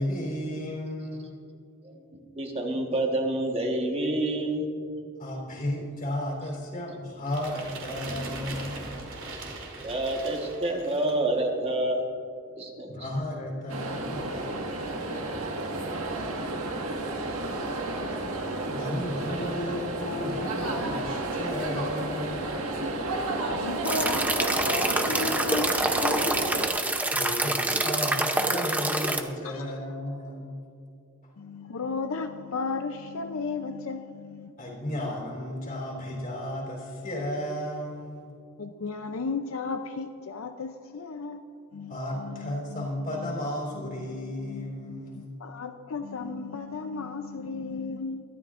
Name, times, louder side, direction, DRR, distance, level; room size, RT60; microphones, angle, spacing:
voice 1, 0.0-1.4 5.2-8.8 12.9-14.5 18.7-22.5 27.1-27.6 27.8-30.6 34.6-38.3 41.9-45.2, left 1 dB, 40° left, 3.6 m, -34 dB
voice 2, 1.8-4.7 9.8-12.0 12.6-13.1 16.0-16.6, right 1 dB, 25° right, 1.3 m, -28 dB
sound 1, 7.3-11.3, right 2 dB, 60° right, 3.0 m, -39 dB
sound 2, 13.7-26.7, right 2 dB, 85° right, 1.6 m, -31 dB
voice 3, 23.5-26.5 27.7-27.8 28.4-28.6 29.4-29.7 31.4-34.5 38.6-41.4 41.7-43.4 43.7-48.2, left 4 dB, 70° left, 0.5 m, -35 dB
sound 3, 23.8-29.2, right 2 dB, 5° right, 0.6 m, -26 dB
23.5 x 12.5 x 2.5 m
head